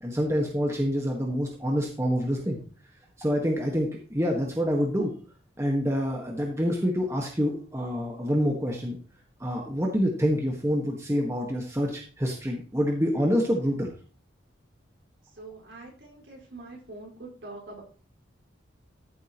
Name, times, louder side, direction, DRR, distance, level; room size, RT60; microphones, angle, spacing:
voice 1, 0.0-2.6 3.2-5.1 5.6-9.0 9.4-13.9, equal, 15° right, 0 dB, 1.5 m, -27 dB
voice 2, 15.3-17.8, right 2 dB, 65° right, -1 dB, 4.9 m, -44 dB
14.0 x 7.6 x 3.0 m, 0.39 s
head